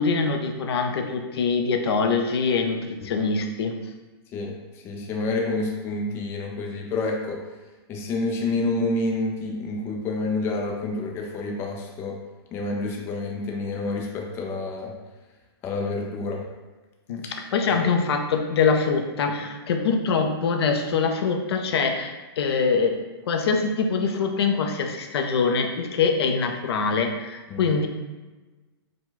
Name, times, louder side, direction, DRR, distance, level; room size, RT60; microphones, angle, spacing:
voice 1, 0.0-3.8 17.1-22.9 23.3-27.9, left 5 dB, 70° left, 4 dB, 0.5 m, -24 dB
voice 2, 4.8-7.4 7.9-12.2 12.5-14.9 15.6-16.4 17.6-17.8 27.5-27.6, left 2 dB, 15° left, 0 dB, 0.4 m, -28 dB
4.7 x 2.2 x 3.9 m, 1.2 s
hypercardioid pair, 150°, 14 cm